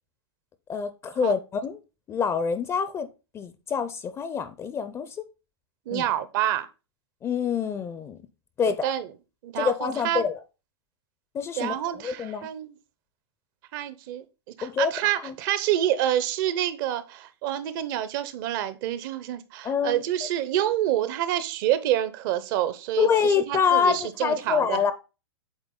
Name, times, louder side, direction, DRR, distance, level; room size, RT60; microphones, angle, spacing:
voice 1, 0.7-1.8 2.1-3.1 3.3-5.2 5.9-6.0 7.2-8.2 8.6-8.9 9.6-10.4 11.3-12.5 14.6-14.9 15.2-15.4 19.6-20.0 23.0-24.9, left 6 dB, 20° left, 0.5 m, -26 dB
voice 2, 5.9-6.7 8.6-9.1 9.4-10.2 11.6-12.8 13.7-14.2 14.6-24.8, right 12 dB, 50° right, 0.8 m, -27 dB
8.2 x 3.7 x 3.8 m
hypercardioid pair, 120°, 14 cm